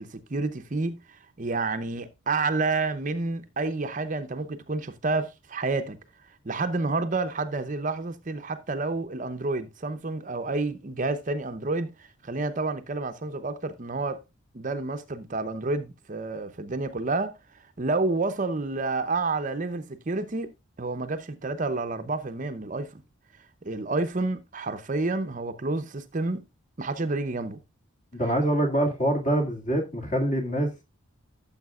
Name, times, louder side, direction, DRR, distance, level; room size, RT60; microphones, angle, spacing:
voice 1, 0.0-6.0 6.4-14.2 14.5-17.3 17.8-20.5 20.8-22.9 23.6-26.4 26.8-27.6, right 3 dB, 40° right, 0.7 m, -29 dB
voice 2, 28.1-30.8, right 1 dB, 35° left, 2.2 m, -25 dB
14.0 x 7.2 x 2.4 m
head